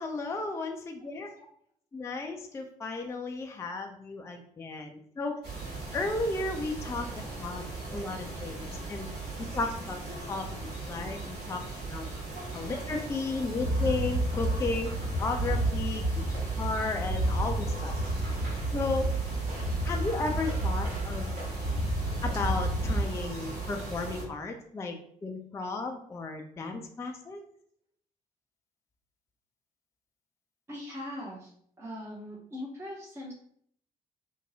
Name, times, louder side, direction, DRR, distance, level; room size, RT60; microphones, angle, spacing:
voice 1, 0.0-1.3 1.9-5.4 5.9-7.6 7.9-9.1 9.5-11.6 11.9-12.1 12.5-14.9 15.2-16.1 16.6-17.9 18.7-19.1 19.8-21.3 22.2-25.0 25.2-27.4, left 3 dB, 15° left, 4 dB, 0.3 m, -34 dB
sound 1, 5.4-24.2, right 3 dB, 55° right, 1.1 m, -38 dB
sound 2, 13.6-23.0, right 1 dB, 80° right, 1.2 m, -30 dB
voice 2, 30.7-33.3, left 1 dB, 15° right, -5 dB, 0.7 m, -41 dB
2.6 x 2.2 x 2.6 m, 0.64 s
figure-of-eight pair, 45°, 19 cm